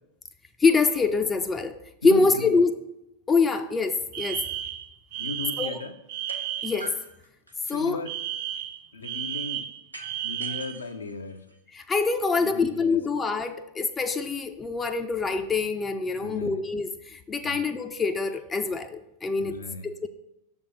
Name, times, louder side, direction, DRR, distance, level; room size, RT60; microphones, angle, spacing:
voice 1, 0.6-1.7 2.0-2.7 3.3-4.4 5.6-5.8 6.6-6.9 7.7-8.0 11.7-19.6 19.8-20.1, left 4 dB, 15° left, 7 dB, 0.4 m, -25 dB
voice 2, 2.0-2.6 5.2-6.0 7.6-8.2 8.9-9.7 10.2-11.4 12.4-13.0 16.2-16.7 17.4-17.6 19.4-20.1, left 4 dB, 75° left, 7 dB, 0.5 m, -36 dB
Alarm, 4.1-6.9 8.1-10.8, right 11 dB, 45° right, 0.4 m, -33 dB
sound 1, 6.3-6.4 6.8-8.0 9.9-11.9, right 1 dB, 85° right, 0.7 m, -44 dB
6.6 x 3.6 x 5.4 m, 0.88 s
figure-of-eight pair, 90°, 0 cm